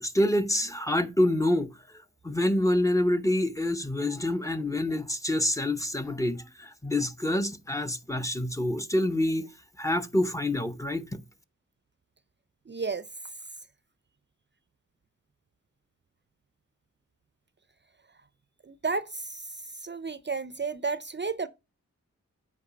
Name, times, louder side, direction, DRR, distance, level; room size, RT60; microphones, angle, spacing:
voice 1, 0.0-1.8 2.2-9.5 9.8-11.2, left 1 dB, 10° left, 0.8 m, -27 dB
voice 2, 12.7-13.1 18.6-19.5 19.8-21.5, right 4 dB, 35° right, 0.5 m, -32 dB
8.6 x 4.7 x 5.0 m
wide cardioid pair, 70°, 31 cm